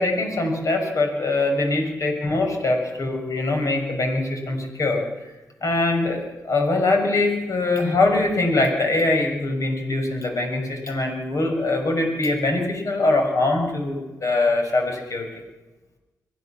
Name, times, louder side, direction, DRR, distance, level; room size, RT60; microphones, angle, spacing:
voice 1, 0.0-5.3 5.6-15.3, left 2 dB, 55° left, 3 dB, 6.1 m, -23 dB
23.5 x 16.0 x 7.4 m, 1.1 s
cardioid pair, 80°, 7 cm